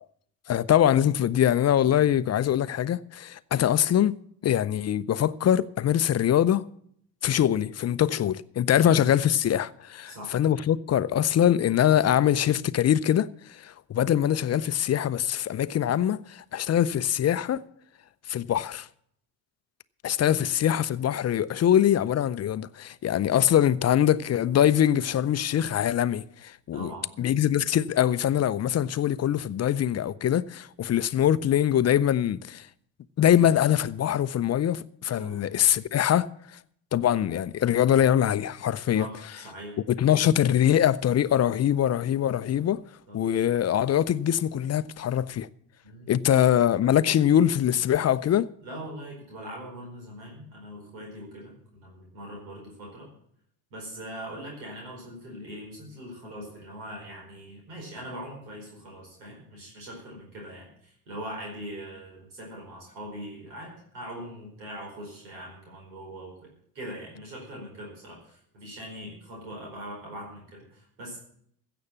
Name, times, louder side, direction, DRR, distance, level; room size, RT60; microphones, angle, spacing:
voice 1, 0.5-6.6 7.2-17.6 18.3-18.9 20.0-26.9 27.2-32.7 33.2-36.3 36.9-39.1 39.9-42.8 43.1-45.5 46.1-48.5, left 10 dB, 30° left, 0.5 m, -23 dB
voice 2, 1.8-2.2 8.7-9.1 10.1-10.4 20.3-20.5 26.7-27.1 35.2-35.4 38.9-39.8 43.1-43.3 45.8-46.5 48.6-53.1 53.7-71.2, equal, 85° right, 4.9 m, -41 dB
16.0 x 6.9 x 7.2 m
hypercardioid pair, 60°, 50 cm